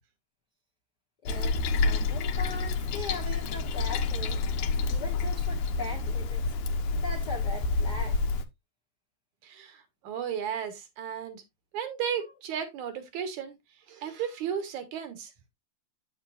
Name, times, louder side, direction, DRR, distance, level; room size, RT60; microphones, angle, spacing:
voice 1, 1.2-4.4 4.8-6.5 6.9-8.3, left 4 dB, 60° left, 1.0 m, -40 dB
Toilet flush, 1.3-8.4, left 3 dB, 80° left, 2.2 m, -28 dB
voice 2, 9.4-11.4 11.7-13.6 13.9-15.3, right 8 dB, 75° right, 2.7 m, -34 dB
8.5 x 7.4 x 2.4 m
omnidirectional pair, 3.5 m